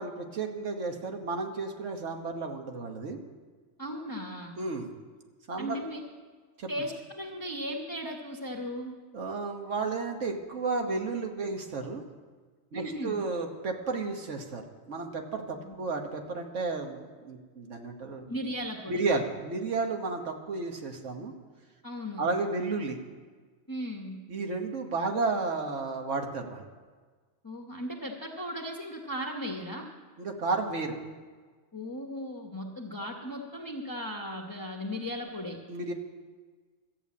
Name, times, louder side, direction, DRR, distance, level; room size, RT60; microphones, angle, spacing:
voice 1, 0.0-3.2 4.6-4.9 5.5-5.8 6.6-6.7 9.1-12.0 12.7-18.2 18.9-21.3 22.2-23.0 24.3-26.7 30.2-30.9 35.7-35.9, right 3 dB, 75° right, 4 dB, 1.5 m, -32 dB
voice 2, 3.8-4.5 5.6-6.0 6.7-8.9 12.7-13.2 15.5-15.7 18.3-19.0 21.8-22.2 23.7-24.2 27.4-29.9 31.7-35.6, equal, 20° left, -1 dB, 0.9 m, -36 dB
13.5 x 6.9 x 8.4 m, 1.5 s
omnidirectional pair, 1.3 m